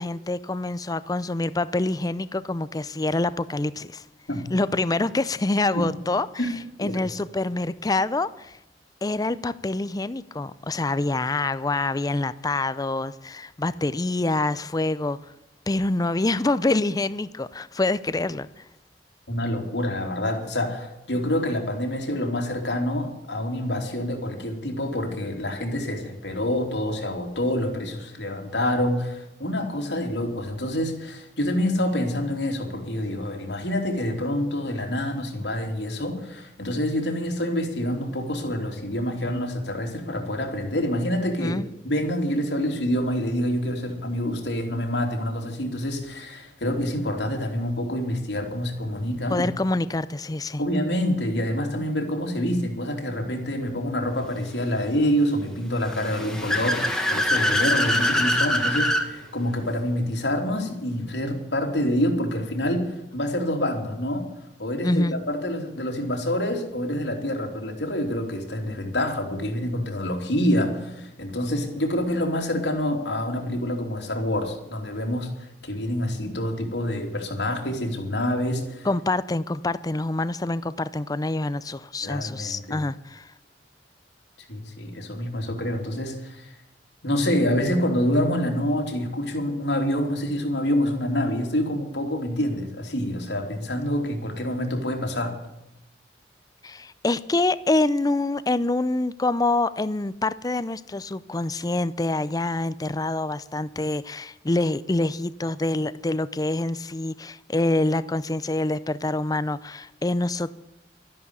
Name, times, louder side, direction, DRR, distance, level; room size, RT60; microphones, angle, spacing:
voice 1, 0.0-4.0 4.5-6.3 6.8-8.6 9.0-15.2 15.7-18.6 41.4-41.7 49.3-50.6 64.8-65.2 78.8-83.3 96.6-110.5, left 2 dB, 20° left, 0.5 m, -26 dB
voice 2, 19.3-41.6 41.8-49.5 50.6-64.3 64.6-78.9 82.0-82.8 84.5-86.6 87.0-95.3, left 1 dB, 85° left, 3.2 m, -27 dB
Car / Accelerating revving vroom, 55.8-59.1, left 1 dB, 5° left, 1.5 m, -23 dB
13.0 x 11.0 x 8.3 m
head